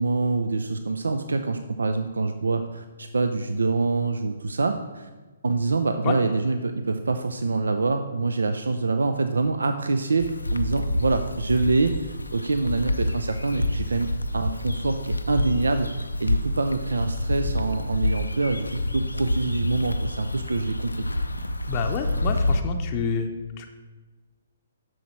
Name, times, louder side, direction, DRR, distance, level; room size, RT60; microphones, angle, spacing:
voice 1, 0.0-5.1 5.4-21.1, right 3 dB, 75° right, 8 dB, 0.5 m, -25 dB
sound 1, 10.2-22.6, left 1 dB, 85° left, 0.5 m, -28 dB
voice 2, 21.7-23.3 23.6-23.7, left 5 dB, 30° left, 4 dB, 0.7 m, -28 dB
7.7 x 6.3 x 4.5 m, 1.3 s
figure-of-eight pair, 130°, 0 cm